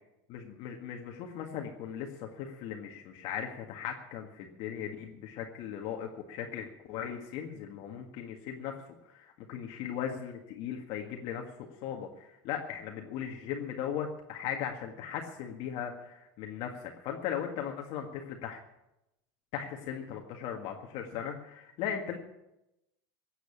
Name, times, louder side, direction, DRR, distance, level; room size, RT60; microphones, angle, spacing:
voice 1, 0.3-8.8 9.0-18.6 19.5-22.2, left 8 dB, 55° left, 2 dB, 1.8 m, -38 dB
15.5 x 8.1 x 8.5 m, 0.90 s
supercardioid pair, 120°, 11 cm